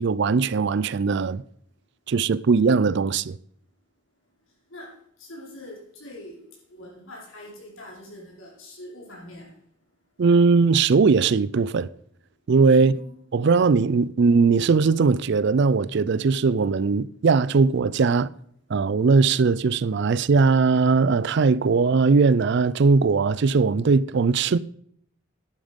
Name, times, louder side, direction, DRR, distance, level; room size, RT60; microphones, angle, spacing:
voice 1, 0.0-1.4 2.1-3.4 10.2-11.9 12.5-13.0 13.3-18.3 18.7-24.6, right 4 dB, 55° right, 0.4 m, -20 dB
voice 2, 4.7-6.4 6.7-9.5 12.7-13.1, left 1 dB, 75° left, 4.6 m, -43 dB
11.0 x 9.1 x 5.2 m
head